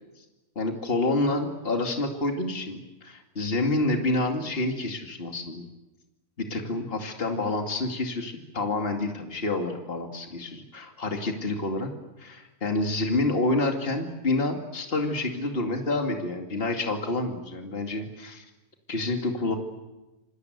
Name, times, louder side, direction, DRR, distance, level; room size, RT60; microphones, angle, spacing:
voice 1, 0.6-5.7 6.4-11.9 12.2-18.4 18.9-19.6, left 2 dB, 40° left, 3 dB, 2.7 m, -28 dB
28.0 x 24.5 x 8.1 m, 1.0 s
omnidirectional pair, 1.6 m